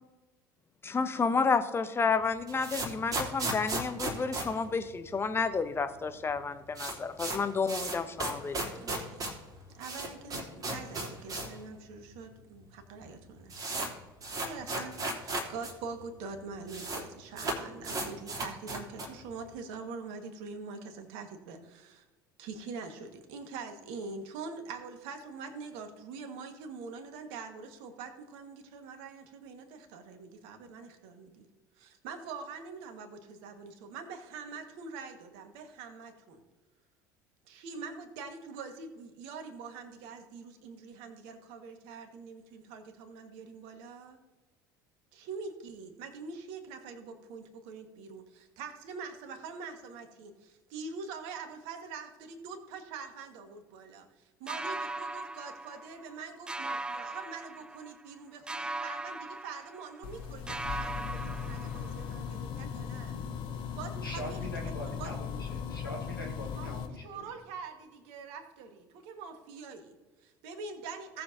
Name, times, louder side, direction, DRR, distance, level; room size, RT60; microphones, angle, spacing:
voice 1, 0.8-8.7, left 5 dB, 20° left, 10 dB, 0.8 m, -30 dB
sound 1, 2.2-5.5 5.7-5.8 6.0-6.1 6.4-11.6 11.9-12.0 12.7-12.8 13.0-15.7 16.0-16.1 16.3-17.0 17.3-19.2, right 2 dB, 30° right, 3.1 m, -36 dB
voice 2, 8.7-9.4 9.7-14.0 14.4-22.1 22.4-31.5 31.7-36.4 37.4-44.2 45.1-63.2 63.7-65.1 66.5-71.2, right 4 dB, 60° right, 6 dB, 1.6 m, -44 dB
sound 2, 54.5-56.2 56.5-58.1 58.5-60.2 60.5-62.2, right 2 dB, 10° right, 0.4 m, -39 dB
sound 3, 60.0-66.9, left 7 dB, 50° left, 1.2 m, -38 dB
voice 3, 64.0-67.3, left 1 dB, 90° left, -1 dB, 1.9 m, -42 dB
17.5 x 7.1 x 2.8 m, 1.2 s
figure-of-eight pair, 65°, 11 cm